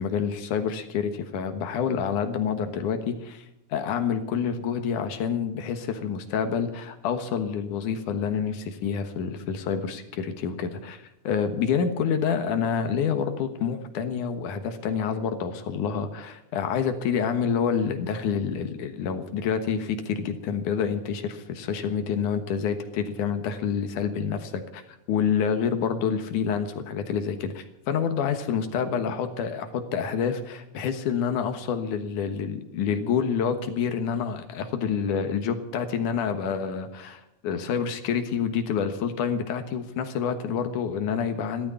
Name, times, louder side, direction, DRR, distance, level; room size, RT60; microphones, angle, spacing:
voice 1, 0.0-3.4 3.7-24.8 25.1-41.7, left 7 dB, 85° left, 8 dB, 2.9 m, -28 dB
15.5 x 12.5 x 7.0 m, 0.84 s
omnidirectional pair, 3.5 m